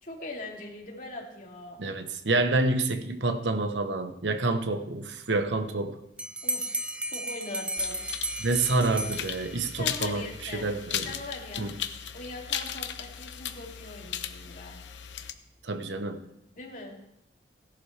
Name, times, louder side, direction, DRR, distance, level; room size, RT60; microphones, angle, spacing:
voice 1, 0.0-1.8 6.4-8.0 9.8-10.7 11.0-11.7 12.1-14.8 16.5-17.0, left 2 dB, 45° left, 2.7 m, -41 dB
voice 2, 1.8-5.9 8.4-11.1 11.6-11.7 15.6-16.2, right 2 dB, 85° right, 1.0 m, -28 dB
Bell, 6.2-9.8, right 1 dB, 5° right, 0.5 m, -34 dB
sound 1, 7.8-15.3, left 9 dB, 85° left, 0.9 m, -37 dB
17.0 x 11.5 x 3.3 m
head